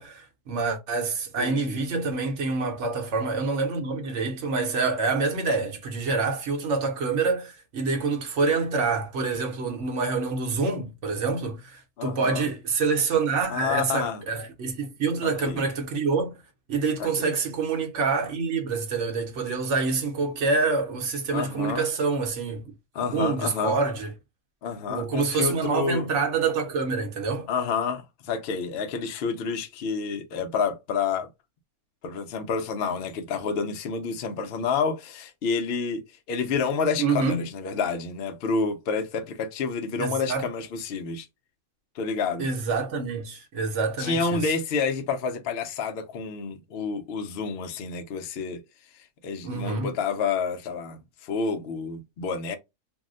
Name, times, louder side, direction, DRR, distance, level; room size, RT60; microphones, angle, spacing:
voice 1, 0.0-16.3 16.7-22.7 23.1-24.1 24.9-27.5 37.0-37.5 40.0-40.5 42.4-44.5 49.4-49.9, right 4 dB, 60° right, 1.0 m, -27 dB
voice 2, 1.4-1.8 12.0-12.5 13.5-14.2 15.2-15.6 17.0-17.3 21.3-21.9 22.9-23.7 24.6-26.1 27.5-31.3 32.0-41.3 42.0-42.5 44.0-48.6 49.2-52.6, left 5 dB, 60° left, 0.6 m, -29 dB
2.7 x 2.1 x 3.6 m
omnidirectional pair, 1.5 m